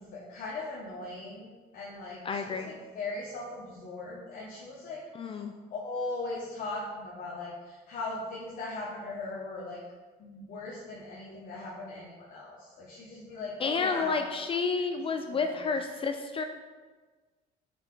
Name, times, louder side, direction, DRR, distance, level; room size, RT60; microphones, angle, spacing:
voice 1, 0.0-9.8 10.2-14.8 15.3-15.7, left 2 dB, 55° left, -6 dB, 1.2 m, -39 dB
voice 2, 2.2-2.7 5.1-5.5 13.6-16.4, left 4 dB, 35° left, 6 dB, 0.4 m, -30 dB
5.7 x 4.3 x 3.8 m, 1.4 s
cardioid pair, 110°, 17 cm